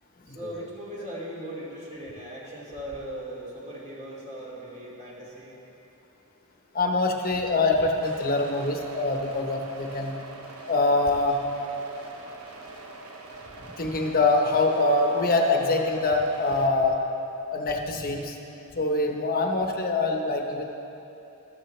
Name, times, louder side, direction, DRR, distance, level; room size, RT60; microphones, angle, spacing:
voice 1, 0.3-5.6, right 1 dB, 35° right, -6 dB, 2.5 m, -39 dB
voice 2, 6.7-10.2 10.7-11.4 13.8-17.0 17.5-18.4 18.7-20.6, left 2 dB, 45° left, 2 dB, 1.1 m, -24 dB
sound 1, 8.0-16.7, right 2 dB, 80° right, 1.1 m, -44 dB
14.0 x 13.0 x 3.3 m, 2.8 s
head